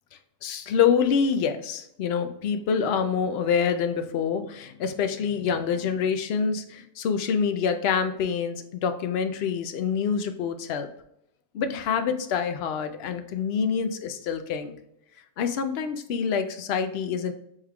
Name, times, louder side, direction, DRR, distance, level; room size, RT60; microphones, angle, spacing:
voice 1, 0.4-10.9 11.5-14.8 15.4-17.3, left 6 dB, 65° left, 8 dB, 0.7 m, -26 dB
7.1 x 3.2 x 2.3 m, 0.77 s
omnidirectional pair, 1.2 m